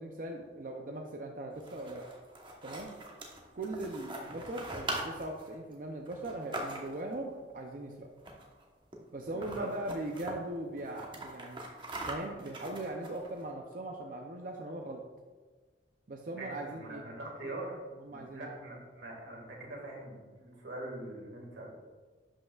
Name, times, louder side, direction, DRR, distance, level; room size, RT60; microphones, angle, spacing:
voice 1, 0.0-2.1 2.6-3.0 3.5-8.1 9.1-11.6 12.1-15.0 16.1-17.1 18.0-18.5, right 1 dB, 45° right, 1 dB, 0.5 m, -40 dB
sound 1, 1.5-7.1 8.2-8.6 8.9-9.0 9.3-10.3 10.8-13.4, right 1 dB, 25° right, 1.0 m, -42 dB
voice 2, 9.3-9.7 16.4-21.7, right 1 dB, 85° right, -1 dB, 2.0 m, -43 dB
11.0 x 5.5 x 2.4 m, 1.4 s
head